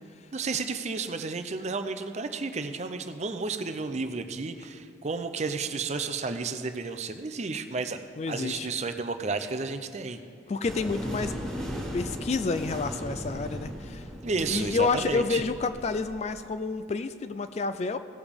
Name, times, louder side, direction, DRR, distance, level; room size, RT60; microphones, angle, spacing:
voice 1, 0.3-8.0 8.3-10.2 14.2-15.4, right 4 dB, 35° right, 8 dB, 0.5 m, -32 dB
voice 2, 8.2-8.7 10.5-11.3 11.9-14.1 14.5-18.0, left 4 dB, 35° left, 11 dB, 0.3 m, -29 dB
sound 1, 10.7-16.3, equal, 5° left, 1.5 m, -37 dB
17.5 x 6.9 x 3.5 m, 2.3 s
head